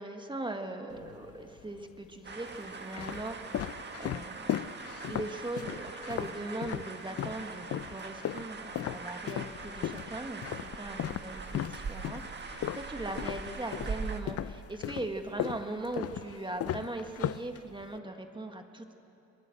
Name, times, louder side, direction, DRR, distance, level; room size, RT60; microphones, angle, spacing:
voice 1, 0.0-3.7 4.0-18.9, right 2 dB, 15° right, 5 dB, 1.7 m, -40 dB
sound 1, 0.9-1.6 2.3-7.4 7.7-14.0 14.3-18.0, left 12 dB, 55° left, 0.5 m, -36 dB
sound 2, 2.2-14.2, right 4 dB, 35° right, 1.8 m, -42 dB
23.0 x 20.0 x 7.7 m, 2.9 s
cardioid pair, 90°, 30 cm